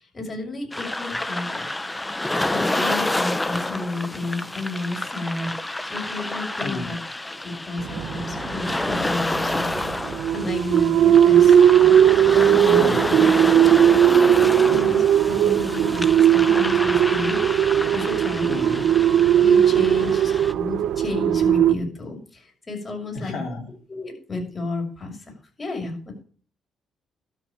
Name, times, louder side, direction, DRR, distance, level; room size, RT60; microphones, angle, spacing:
voice 1, 0.0-1.6 2.5-7.0 7.2-9.9 10.3-11.6 11.9-12.0 12.3-13.2 14.0-18.8 19.4-23.3 23.9-25.2 25.6-26.2, left 2 dB, 30° left, 2 dB, 6.6 m, -32 dB
sound 1, 0.7-20.5, left 1 dB, 15° left, 0.9 m, -29 dB
sound 2, 7.8-21.7, right 10 dB, 80° right, 1.1 m, -18 dB
voice 2, 14.7-15.0 18.5-18.9 20.0-20.1 23.1-23.7, left 3 dB, 70° left, -3 dB, 4.2 m, -33 dB
12.5 x 6.2 x 8.9 m, 0.43 s
cardioid pair, 90°, 0 cm